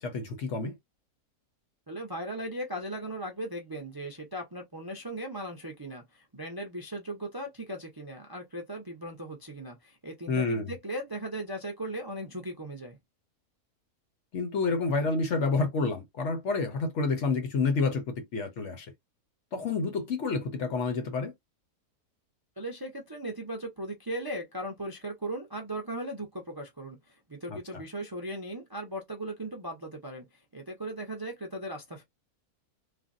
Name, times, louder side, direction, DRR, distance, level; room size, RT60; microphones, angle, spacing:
voice 1, 0.0-0.8 10.3-10.7 14.3-18.9 19.5-21.3 27.5-27.6, left 4 dB, 60° left, 0.9 m, -29 dB
voice 2, 1.9-13.0 22.6-32.0, right 1 dB, 25° right, 0.4 m, -38 dB
3.4 x 2.1 x 2.5 m
omnidirectional pair, 1.6 m